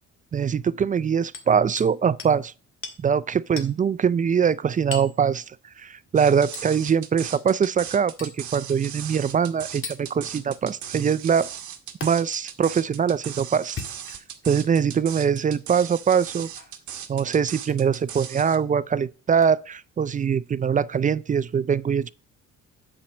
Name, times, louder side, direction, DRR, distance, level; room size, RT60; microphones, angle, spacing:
voice 1, 0.3-2.5 3.0-5.4 5.8-11.5 12.0-13.8 14.5-16.5 17.1-22.1, right 7 dB, 25° right, 0.4 m, -23 dB
Hammer, 1.3-1.9 2.2-2.4 2.8-3.0 3.6-3.7 4.9-5.2 6.5-6.7 8.2-8.4 9.8-10.0 12.0-12.1 13.6-14.4 15.1-15.3 16.6-16.8 17.6-17.8 19.4-19.5, left 4 dB, 45° left, 1.8 m, -37 dB
sound 1, 6.2-18.6, right 9 dB, 70° right, 1.2 m, -38 dB
8.7 x 4.4 x 6.1 m
cardioid pair, 90°, 30 cm